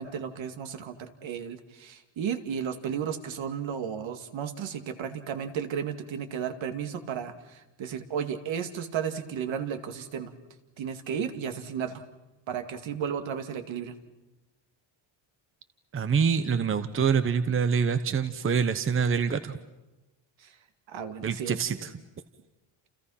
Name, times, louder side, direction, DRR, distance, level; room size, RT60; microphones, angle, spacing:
voice 1, 0.0-10.3 10.8-12.0 12.5-13.9 20.4-20.5 20.9-21.6, right 7 dB, 65° right, 7 dB, 2.4 m, -34 dB
voice 2, 15.9-19.6 21.2-21.9, right 6 dB, 25° right, 11 dB, 0.9 m, -25 dB
30.0 x 29.0 x 5.7 m, 1.0 s
cardioid pair, 160°, 50 cm